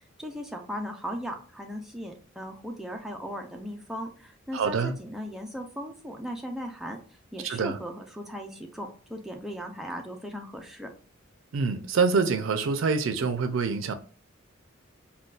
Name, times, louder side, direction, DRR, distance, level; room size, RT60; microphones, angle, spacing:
voice 1, 0.2-7.0 7.3-10.9, equal, ahead, 0.4 m, -37 dB
voice 2, 4.5-5.0 7.4-7.8 11.5-13.9, right 4 dB, 75° right, 0.4 m, -26 dB
3.7 x 2.3 x 2.4 m
head